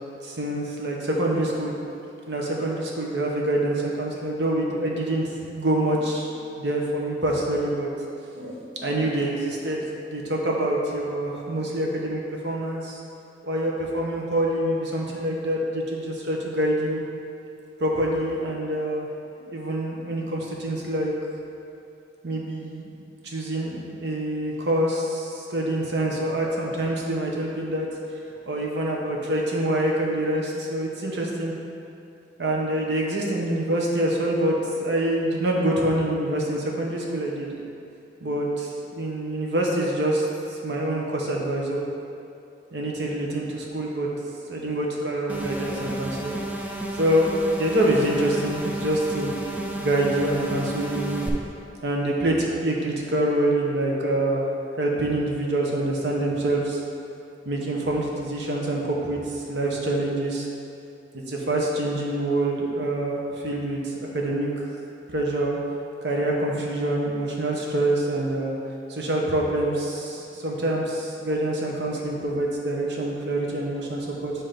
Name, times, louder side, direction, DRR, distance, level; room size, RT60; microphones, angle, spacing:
voice 1, 0.2-1.7 2.3-5.2 5.5-6.3 6.6-7.9 8.3-8.5 8.8-13.0 13.4-17.0 17.8-19.1 19.4-21.1 22.2-22.9 23.2-27.9 28.5-31.5 32.4-37.6 38.2-40.2 40.5-41.8 42.7-44.1 44.5-46.3 46.9-49.3 49.7-51.2 51.8-54.4 54.8-56.8 57.4-60.4 61.1-64.7 65.1-65.6 66.0-68.6 68.9-74.3, right 1 dB, 70° right, -2 dB, 1.0 m, -26 dB
sound 1, 45.3-51.3, right 1 dB, 10° right, 0.4 m, -32 dB
7.8 x 2.9 x 5.1 m, 2.7 s
head